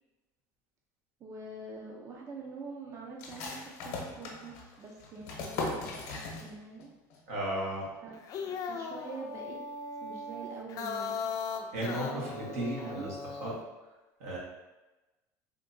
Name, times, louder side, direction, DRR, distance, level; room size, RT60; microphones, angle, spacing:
voice 1, 1.2-6.9 8.0-9.6 10.0-11.2 11.9-13.1, right 3 dB, 35° right, -1 dB, 0.5 m, -45 dB
sound 1, 3.2-6.8 7.1-7.2 7.6-8.1, left 3 dB, 80° left, 0.7 m, -39 dB
voice 2, 7.3-7.9 11.7-13.5 14.2-14.4, right 1 dB, 85° right, -6 dB, 1.3 m, -35 dB
sound 2, 8.1-13.6, left 5 dB, 45° left, 0.4 m, -38 dB
3.6 x 2.8 x 2.6 m, 1.1 s
supercardioid pair, 115°, 8 cm